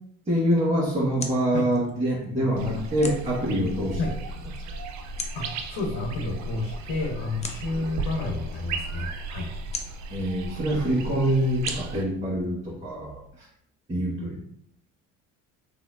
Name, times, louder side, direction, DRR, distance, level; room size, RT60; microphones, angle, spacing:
voice 1, 0.3-4.0 10.1-13.5 13.9-14.5, equal, 20° right, -9 dB, 1.4 m, -25 dB
sound 1, 0.5-13.3, left 3 dB, 20° left, 0.6 m, -44 dB
sound 2, 2.6-12.0, right 3 dB, 50° right, 0.6 m, -35 dB
voice 2, 5.3-9.5, left 3 dB, 70° left, 3 dB, 1.0 m, -30 dB
4.0 x 2.9 x 2.5 m, 0.70 s
hypercardioid pair, 75°, 35 cm